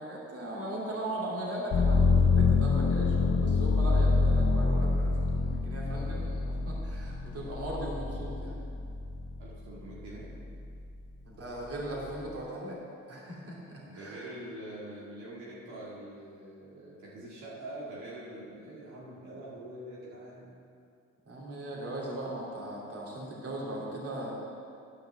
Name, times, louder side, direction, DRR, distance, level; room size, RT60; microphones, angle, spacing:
voice 1, 0.0-8.6 11.3-12.8 13.1-14.3 21.3-24.3, right 1 dB, 50° right, -4 dB, 2.7 m, -38 dB
sound 1, 1.7-9.5 10.0-10.8, left 4 dB, 55° left, 0.7 m, -26 dB
voice 2, 9.4-10.3 13.9-20.5, right 1 dB, 85° right, -6 dB, 2.1 m, -44 dB
10.5 x 5.3 x 7.0 m, 2.4 s
cardioid pair, 90°, 30 cm